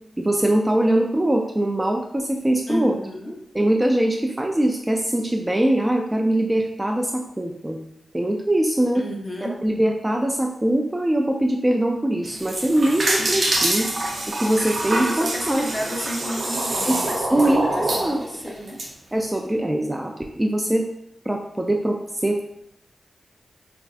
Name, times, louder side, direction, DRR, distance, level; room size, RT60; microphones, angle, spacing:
voice 1, 0.2-2.9 3.5-7.8 8.1-9.0 9.4-13.9 14.4-15.7 16.9-17.0 17.3-18.2 19.1-20.9 21.3-22.5, right 1 dB, 20° right, 1 dB, 0.3 m, -22 dB
voice 2, 2.7-3.5 8.9-9.6 14.9-18.8, equal, 20° left, 0 dB, 0.8 m, -32 dB
sound 1, 12.2-18.9, right 2 dB, 60° right, 0.7 m, -25 dB
4.3 x 2.4 x 2.4 m, 0.78 s
cardioid pair, 60°, 0 cm